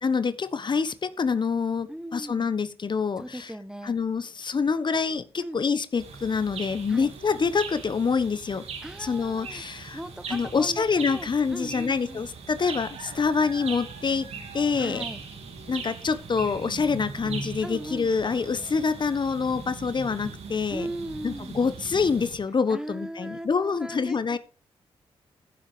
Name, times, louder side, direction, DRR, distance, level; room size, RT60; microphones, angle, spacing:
voice 1, 0.0-3.5 3.8-8.6 9.0-10.0 10.3-14.3 14.5-15.0 15.7-20.9 21.2-24.4, left 5 dB, 45° left, 13 dB, 1.4 m, -26 dB
voice 2, 1.9-2.5 3.2-3.9 5.4-5.6 6.9-7.1 8.8-9.6 9.9-12.2 14.8-15.2 17.6-18.1 20.7-21.5 22.7-24.4, right 1 dB, 5° right, 14 dB, 1.2 m, -38 dB
sound 1, 6.0-22.4, right 5 dB, 80° right, 3.5 m, -40 dB
15.0 x 7.6 x 5.2 m, 0.34 s
cardioid pair, 70°, 11 cm